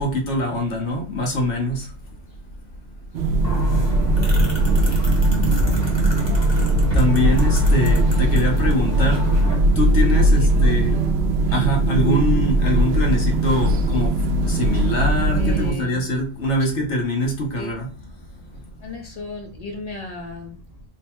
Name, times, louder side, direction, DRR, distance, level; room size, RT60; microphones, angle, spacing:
voice 1, 0.0-1.9 6.9-9.3 9.7-11.0 11.5-17.9 18.2-18.4, left 1 dB, 70° left, 1.3 m, -23 dB
sound 1, 3.1-15.7, right 1 dB, 70° right, 0.8 m, -19 dB
sound 2, 3.4-9.5, left 1 dB, 25° left, 1.1 m, -28 dB
voice 2, 9.0-9.5 10.2-11.5 15.3-16.1 16.5-16.7 17.6-17.8 18.5-20.8, left 2 dB, 40° left, 0.6 m, -36 dB
3.3 x 2.1 x 4.3 m
omnidirectional pair, 1.2 m